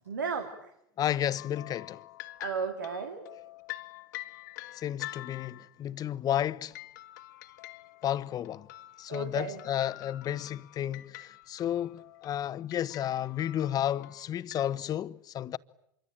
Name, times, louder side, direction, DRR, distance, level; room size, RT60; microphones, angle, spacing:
voice 1, 0.1-0.7 2.4-3.3 9.1-9.6, right 5 dB, 90° right, 2.7 m, -34 dB
voice 2, 1.0-2.0 4.7-6.7 8.0-8.7 9.0-15.6, left 11 dB, 40° left, 1.0 m, -32 dB
sound 1, 1.4-5.8 6.7-14.7, left 17 dB, 70° left, 1.6 m, -46 dB
26.5 x 23.5 x 8.9 m
hypercardioid pair, 85°, 10 cm